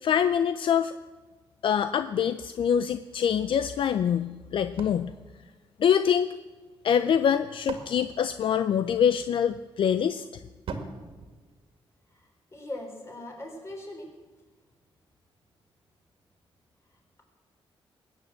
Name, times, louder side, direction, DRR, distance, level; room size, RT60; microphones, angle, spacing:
voice 1, 0.0-1.0 1.6-5.1 5.8-6.3 6.8-10.4, left 8 dB, 60° left, 11 dB, 0.5 m, -25 dB
sound 1, 4.8-6.3 7.2-9.2 10.7-12.3, right 5 dB, 70° right, 2.0 m, -42 dB
voice 2, 12.1-14.1, left 1 dB, 30° left, 1 dB, 4.2 m, -40 dB
20.5 x 8.9 x 7.7 m, 1.3 s
wide cardioid pair, 135°, 10 cm